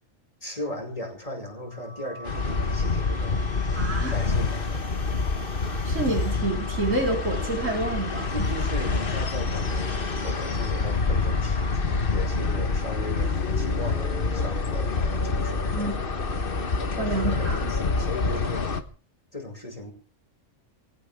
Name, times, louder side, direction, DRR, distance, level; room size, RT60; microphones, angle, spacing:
voice 1, 0.4-5.0 8.3-16.0 16.4-18.7 19.3-19.9, left 1 dB, 25° left, 3 dB, 5.8 m, -37 dB
sound 1, 1.6-12.0, equal, 5° left, 4.2 m, -44 dB
sound 2, 2.3-18.8, left 4 dB, 45° left, 1.5 m, -27 dB
voice 2, 3.8-4.2 5.8-8.3 15.7-15.9 17.0-17.6, right 2 dB, 70° right, 0 dB, 4.7 m, -28 dB
23.5 x 17.0 x 3.6 m, 0.39 s
omnidirectional pair, 1.4 m